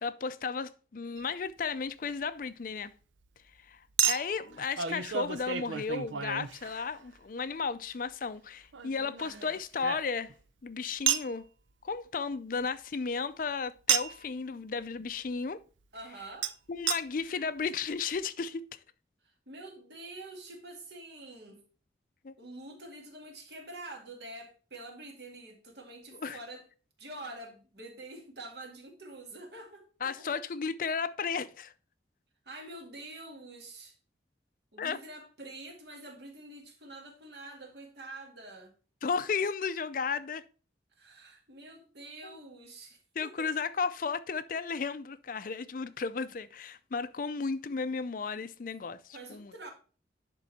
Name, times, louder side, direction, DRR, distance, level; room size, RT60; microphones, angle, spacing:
voice 1, 0.0-2.9 3.6-10.3 10.6-11.4 11.8-15.6 16.7-18.8 22.2-22.3 26.1-26.4 30.0-31.7 34.8-35.0 39.0-40.4 42.2-42.4 43.2-49.5, left 5 dB, 45° left, 0.4 m, -34 dB
Chink clink, 1.2-1.3 4.0-7.2 8.7-10.4 11.1-11.3 13.9-14.3 16.4-16.5 16.9-17.0 17.6-17.7 17.9-18.0, right 9 dB, 90° right, 0.6 m, -32 dB
voice 2, 15.9-16.5 19.2-21.6 22.4-26.6 27.0-30.3 32.4-34.0 34.7-38.7 40.9-43.5 49.1-49.7, right 2 dB, 65° right, 2.1 m, -46 dB
10.5 x 3.8 x 4.1 m
head